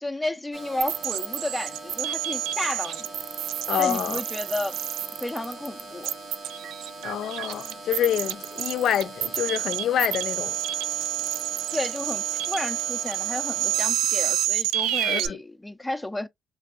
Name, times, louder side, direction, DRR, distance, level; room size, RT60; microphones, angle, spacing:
voice 1, 0.0-3.1 3.8-4.8 5.2-6.1 11.7-16.3, left 1 dB, 10° left, 0.5 m, -32 dB
sound 1, 0.5-13.9, right 2 dB, 60° right, 1.2 m, -42 dB
sound 2, 0.8-15.3, right 12 dB, 90° right, 0.3 m, -29 dB
voice 2, 3.7-4.2 7.0-10.5 15.0-15.4, left 10 dB, 70° left, 0.4 m, -27 dB
3.3 x 2.6 x 2.4 m
cardioid pair, 90°, 0 cm